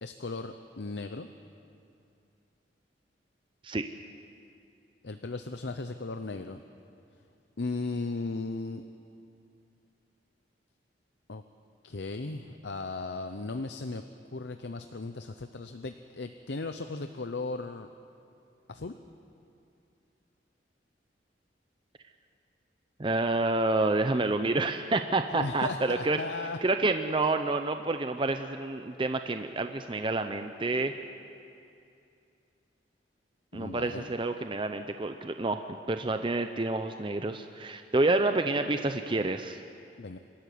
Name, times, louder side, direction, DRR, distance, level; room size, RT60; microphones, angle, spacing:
voice 1, 0.0-1.3 5.0-6.6 7.6-8.8 11.3-11.4 11.8-14.0 14.3-17.9 18.7-18.9 25.3-26.6 33.5-34.1 40.0-40.2, left 3 dB, 70° left, 8 dB, 0.7 m, -36 dB
voice 2, 23.0-26.2 26.6-30.9 33.5-39.6, right 2 dB, 25° right, 8 dB, 0.6 m, -28 dB
25.5 x 13.0 x 9.4 m, 2.6 s
head